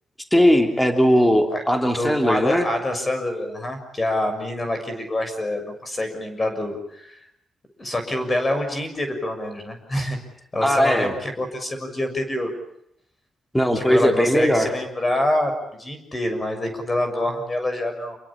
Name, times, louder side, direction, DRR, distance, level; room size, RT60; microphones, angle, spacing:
voice 1, 0.3-2.7 10.6-11.1 13.5-14.7, equal, 5° left, 4 dB, 3.1 m, -18 dB
voice 2, 1.9-7.2 7.8-10.2 10.5-12.5 13.7-18.2, left 1 dB, 20° left, 7 dB, 6.7 m, -26 dB
29.0 x 23.0 x 8.7 m, 0.77 s
wide cardioid pair, 150°, 0 cm